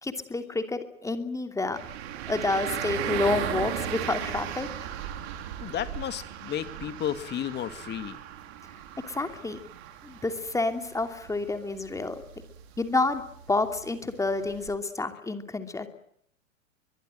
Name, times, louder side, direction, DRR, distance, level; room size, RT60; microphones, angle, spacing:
voice 1, 0.0-1.8 2.3-4.9 9.1-9.6 10.0-12.2 12.8-13.2 13.5-15.9, left 3 dB, 10° left, 7 dB, 2.8 m, -29 dB
sound 1, 1.7-14.7, right 10 dB, 55° right, 4.1 m, -37 dB
voice 2, 5.6-8.2, left 10 dB, 25° left, 11 dB, 2.2 m, -33 dB
23.0 x 22.5 x 9.1 m, 0.70 s
hypercardioid pair, 110°, 40 cm